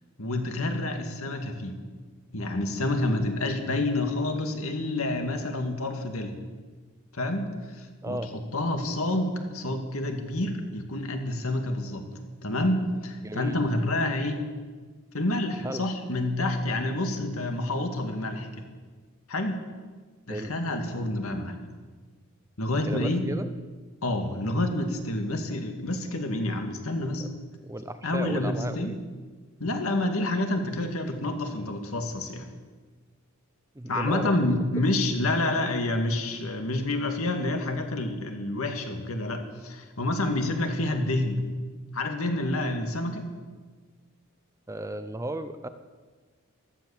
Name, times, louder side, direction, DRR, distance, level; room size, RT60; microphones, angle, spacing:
voice 1, 0.2-1.8 2.3-6.3 7.1-12.1 12.4-14.4 15.1-18.7 19.3-19.6 20.3-21.7 22.6-23.3 24.0-27.3 28.0-29.0 29.6-32.5 33.9-41.4 41.9-43.3, left 1 dB, 75° left, 5 dB, 2.1 m, -28 dB
voice 2, 8.0-8.3 13.2-13.6 15.6-15.9 20.3-20.5 22.8-23.5 27.2-27.3 27.6-29.0 33.8-34.4 44.7-45.7, right 1 dB, 15° right, 10 dB, 0.6 m, -34 dB
15.5 x 12.5 x 7.2 m, 1.4 s
head